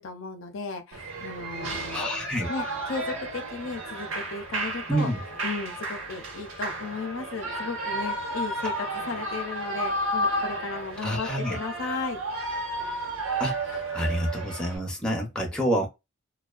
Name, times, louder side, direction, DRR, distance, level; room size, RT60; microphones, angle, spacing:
voice 1, 0.0-2.1 2.5-5.1 5.4-12.2, left 4 dB, 65° left, 0.5 m, -35 dB
Shout / Cheering, 0.9-14.8, right 1 dB, 90° right, 1.0 m, -32 dB
voice 2, 1.9-2.5 4.9-5.2 11.0-11.6 13.4-13.6 13.9-15.9, equal, 5° left, 0.5 m, -27 dB
2.4 x 2.2 x 2.3 m
head